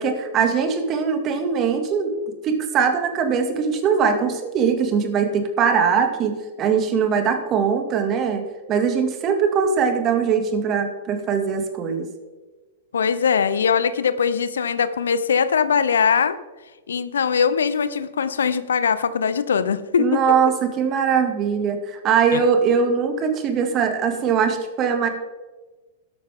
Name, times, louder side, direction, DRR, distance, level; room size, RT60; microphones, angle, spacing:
voice 1, 0.0-2.1 2.4-12.1 20.0-25.1, right 6 dB, 35° right, 6 dB, 2.2 m, -21 dB
voice 2, 12.9-16.4 16.9-20.2 22.3-22.4, left 6 dB, 75° left, 14 dB, 0.8 m, -21 dB
13.0 x 11.5 x 3.7 m, 1.2 s
figure-of-eight pair, 100°, 0 cm